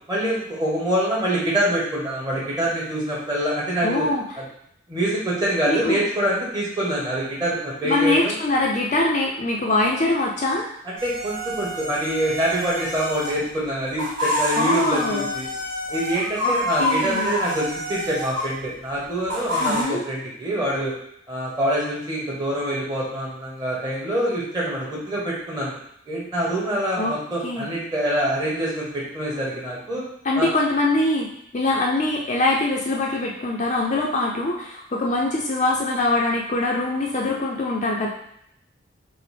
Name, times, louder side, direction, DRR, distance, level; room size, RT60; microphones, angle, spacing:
voice 1, 0.1-4.1 4.4-4.5 4.9-8.3 10.8-15.5 15.9-20.9 21.3-25.7 26.1-30.0 30.3-30.5, right 1 dB, 20° right, -6 dB, 1.2 m, -25 dB
voice 2, 3.8-4.2 5.7-6.0 7.8-10.7 14.6-15.3 16.4-17.3 19.6-20.0 27.0-27.1 27.4-27.7 30.2-31.3 31.5-38.1, left 2 dB, 35° left, -1 dB, 0.4 m, -23 dB
sound 1, 11.0-13.4 13.8-18.5 19.3-19.8, left 1 dB, 70° right, 1.6 m, -27 dB
5.8 x 2.0 x 3.4 m, 0.74 s
head